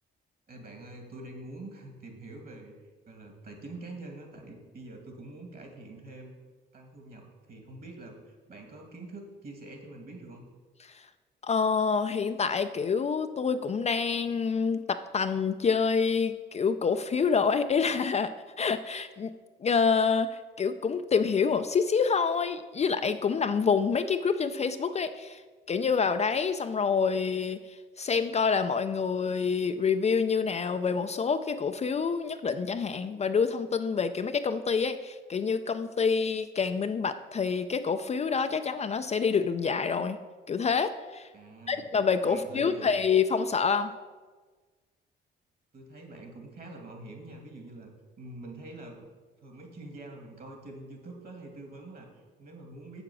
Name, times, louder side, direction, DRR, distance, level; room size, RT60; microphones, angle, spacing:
voice 1, 0.5-2.8 3.1-6.3 6.7-10.4 41.3-41.9 42.3-42.9 45.7-49.0 49.4-53.0, right 2 dB, 50° right, 3 dB, 2.3 m, -45 dB
voice 2, 11.4-18.3 18.6-19.3 19.6-25.4 25.7-40.2 40.5-41.3 41.7-43.9, left 5 dB, 35° left, 9 dB, 0.4 m, -27 dB
7.3 x 6.9 x 6.1 m, 1.4 s
cardioid pair, 90°, 20 cm